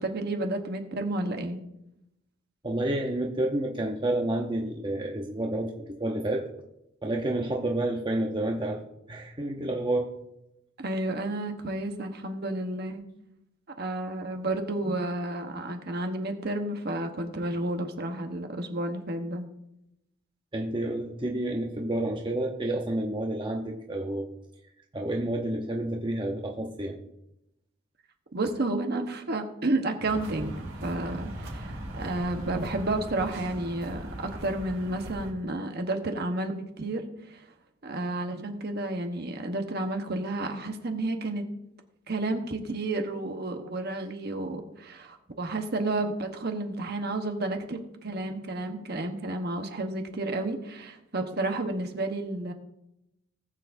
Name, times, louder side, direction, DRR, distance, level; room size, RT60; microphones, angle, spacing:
voice 1, 0.0-1.6 10.8-13.0 13.8-19.5 28.3-37.4 37.8-41.5 42.1-52.5, right 2 dB, 50° right, 5 dB, 1.1 m, -31 dB
voice 2, 2.6-6.5 7.0-8.8 9.1-10.2 20.5-24.3 24.9-27.0, right 1 dB, 25° right, 1 dB, 0.8 m, -29 dB
sound 1, 30.0-35.3, right 1 dB, 80° right, 3.8 m, -39 dB
19.5 x 7.2 x 2.6 m, 0.84 s
head